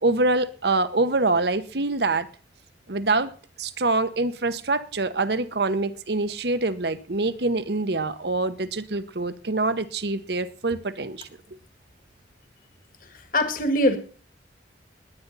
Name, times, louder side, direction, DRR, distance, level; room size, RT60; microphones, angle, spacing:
voice 1, 0.0-2.3 2.9-3.3 3.6-11.3, right 2 dB, 65° right, 13 dB, 1.0 m, -25 dB
voice 2, 13.1-14.0, left 1 dB, 50° left, 8 dB, 1.9 m, -23 dB
20.0 x 9.6 x 4.1 m, 0.40 s
head